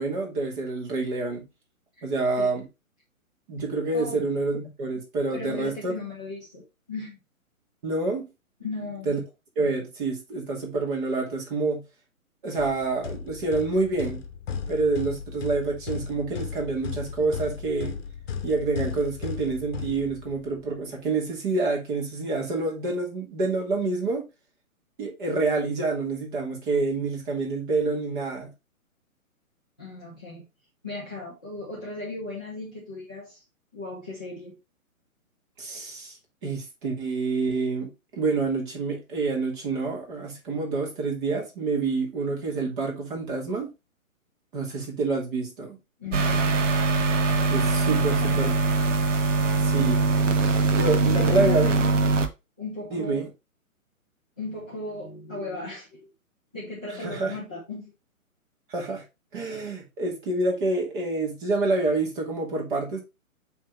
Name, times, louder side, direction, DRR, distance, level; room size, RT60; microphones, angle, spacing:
voice 1, 0.0-1.5 2.0-2.6 3.5-5.9 7.8-8.3 9.1-9.2 9.6-11.8 12.4-14.2 14.7-17.9 18.4-24.3 25.0-28.5 35.6-36.2 36.4-43.7 44.5-45.8 47.5-48.5 49.6-50.1 50.7-51.7 52.9-53.3 57.0-57.4 58.7-59.0 59.3-63.0, right 3 dB, 35° right, 2.4 m, -27 dB
voice 2, 5.3-7.2 8.6-9.1 29.8-30.4 30.8-33.4 33.7-34.6 46.0-46.6 47.9-48.7 51.0-52.2 52.6-53.3 54.4-56.1 56.5-57.9, left 3 dB, 5° left, 0.4 m, -36 dB
sound 1, 12.6-20.6, left 6 dB, 45° left, 1.0 m, -36 dB
sound 2, 46.1-52.3, right 3 dB, 60° right, 1.0 m, -22 dB
8.2 x 3.4 x 3.3 m
hypercardioid pair, 155°, 43 cm